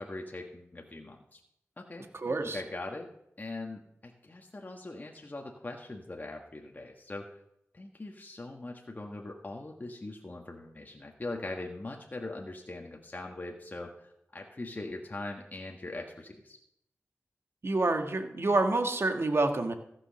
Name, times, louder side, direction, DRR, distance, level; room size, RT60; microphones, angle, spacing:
voice 1, 0.0-1.4 1.8-2.1 2.4-3.1 3.4-7.4 7.7-16.6, left 2 dB, 35° left, 1 dB, 1.5 m, -41 dB
voice 2, 2.1-2.6 17.6-19.7, right 2 dB, 55° right, 5 dB, 1.6 m, -28 dB
14.5 x 6.3 x 6.3 m, 0.76 s
cardioid pair, 55°, 5 cm